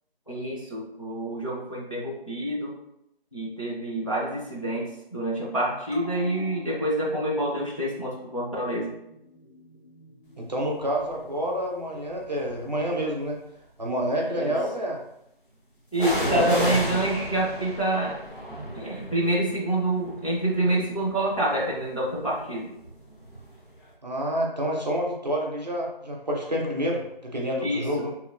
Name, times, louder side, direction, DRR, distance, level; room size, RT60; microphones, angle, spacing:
voice 1, 0.3-2.7 3.3-4.9 5.1-8.9 14.3-14.5 15.9-18.2 18.7-22.7 27.6-27.8, right 1 dB, 35° left, -5 dB, 0.5 m, -27 dB
sound 1, 5.9-12.8 13.1-13.2, equal, 75° left, 1.1 m, -46 dB
voice 2, 10.4-13.4 13.8-15.0 16.2-16.8 24.0-28.1, equal, 45° right, -1 dB, 0.5 m, -28 dB
sound 2, 11.0-11.4 12.1-13.1 16.0-23.6 23.9-24.0, equal, 55° left, 0.9 m, -34 dB
3.0 x 2.5 x 2.4 m, 0.82 s
figure-of-eight pair, 170°, 30 cm